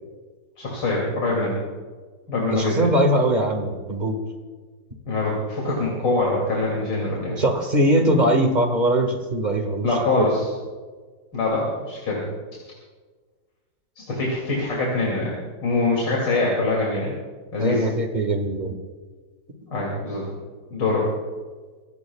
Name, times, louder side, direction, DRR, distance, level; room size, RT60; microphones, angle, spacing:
voice 1, 0.6-1.6 2.3-2.9 5.1-7.4 9.8-10.5 11.3-12.2 14.0-15.3 15.6-17.2 17.5-17.8 19.7-20.3 20.7-21.1, left 2 dB, 85° left, -4 dB, 3.4 m, -24 dB
voice 2, 2.5-4.2 7.4-9.9 10.2-10.3 17.6-18.7, right 1 dB, 25° right, 4 dB, 1.8 m, -21 dB
24.5 x 16.5 x 2.4 m, 1.4 s
omnidirectional pair, 1.9 m